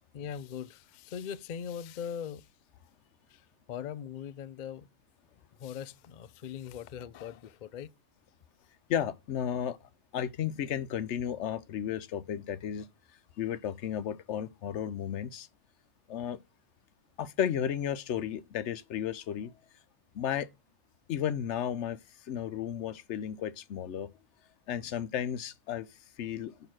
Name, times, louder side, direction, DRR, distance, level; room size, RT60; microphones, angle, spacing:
voice 1, 0.1-2.5 3.3-4.9 5.6-7.9, left 8 dB, 85° left, 0.4 m, -40 dB
voice 2, 8.9-9.8 10.1-12.9 13.4-15.5 16.1-16.4 17.2-19.5 20.1-20.5 21.1-22.0 22.3-24.1 24.7-25.9 26.2-26.5, left 9 dB, 65° left, 0.9 m, -33 dB
6.7 x 5.8 x 6.1 m
omnidirectional pair, 1.5 m